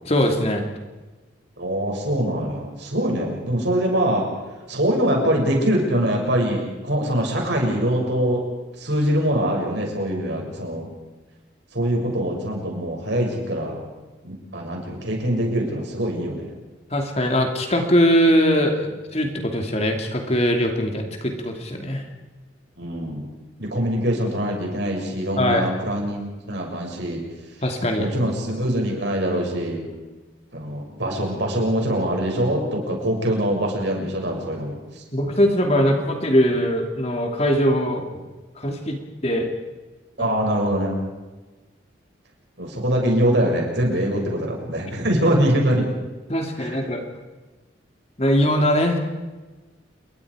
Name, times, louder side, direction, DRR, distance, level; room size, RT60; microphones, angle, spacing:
voice 1, 0.0-0.6 16.9-18.9 19.1-22.0 25.4-25.7 27.6-28.1 35.1-38.2 38.6-39.0 39.2-39.5 40.2-40.3 46.3-47.0 48.2-49.0, equal, 30° left, 3 dB, 2.7 m, -21 dB
voice 2, 1.6-4.3 4.7-8.4 8.8-10.9 11.7-13.8 14.2-16.5 22.8-23.3 23.6-27.2 28.0-29.9 30.5-35.0 40.2-41.0 42.6-45.8 46.6-46.8, right 1 dB, 60° right, 0 dB, 6.9 m, -23 dB
28.5 x 23.0 x 5.0 m, 1.2 s
head